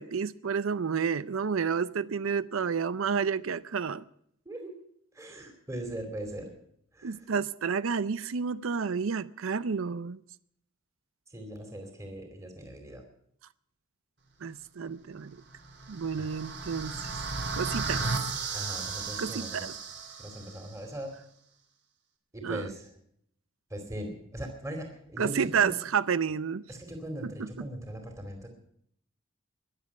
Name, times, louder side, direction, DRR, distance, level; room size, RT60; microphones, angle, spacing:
voice 1, 0.0-4.0 7.0-10.2 14.4-15.4 15.9-17.0 17.5-18.0 19.2-19.7 22.4-22.7 25.2-26.6 27.2-27.7, right 6 dB, 80° right, 0.6 m, -30 dB
voice 2, 5.1-6.5 6.9-7.3 11.3-13.0 16.2-16.3 17.9-18.1 18.5-19.7 20.2-21.1 22.3-22.9 23.7-25.7 26.7-28.5, right 1 dB, 15° right, 2.5 m, -40 dB
sound 1, 15.6-20.7, right 4 dB, 55° right, 2.9 m, -35 dB
22.0 x 7.5 x 8.2 m
head